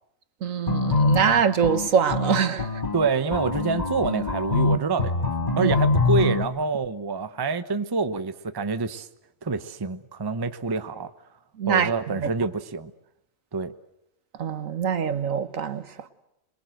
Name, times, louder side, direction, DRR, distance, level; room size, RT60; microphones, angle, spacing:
voice 1, 0.4-2.8 5.6-5.7 11.6-11.9 12.2-12.3 14.4-15.8, right 7 dB, 70° right, 1.6 m, -24 dB
sound 1, 0.7-6.4, left 3 dB, 30° left, 1.6 m, -24 dB
voice 2, 2.9-5.1 5.6-9.1 9.4-11.1 11.7-12.9 13.5-13.7, right 4 dB, 20° right, 0.8 m, -27 dB
26.5 x 22.0 x 7.8 m
omnidirectional pair, 1.4 m